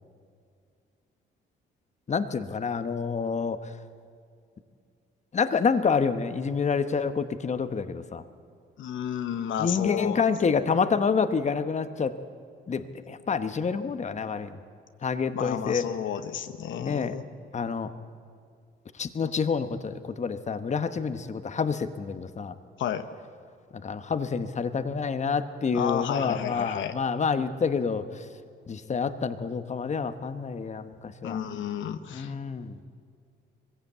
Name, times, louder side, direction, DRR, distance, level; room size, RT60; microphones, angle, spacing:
voice 1, 2.1-3.7 5.3-8.2 9.6-12.1 12.7-14.6 15.0-15.8 16.8-17.2 17.5-17.9 19.0-22.6 23.7-28.3 28.7-31.4 32.1-32.8, left 5 dB, 35° left, 10 dB, 1.1 m, -28 dB
voice 2, 8.8-10.2 15.3-17.2 22.8-23.0 25.7-27.0 31.2-32.3, left 9 dB, 75° left, 9 dB, 1.0 m, -31 dB
20.5 x 16.0 x 8.2 m, 2.3 s
cardioid pair, 90°, 20 cm